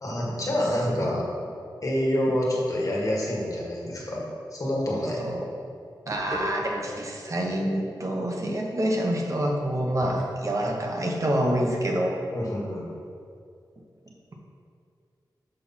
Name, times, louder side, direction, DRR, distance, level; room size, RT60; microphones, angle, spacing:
voice 1, 0.0-1.3 1.8-4.2 4.5-5.2 12.3-12.9, left 1 dB, 45° left, -4 dB, 1.7 m, -27 dB
sound 1, 5.7-12.7, equal, 5° left, 1.5 m, -43 dB
voice 2, 6.0-12.2, right 1 dB, 40° right, 0 dB, 1.1 m, -27 dB
6.6 x 5.4 x 4.3 m, 2.3 s
wide cardioid pair, 80°, 8 cm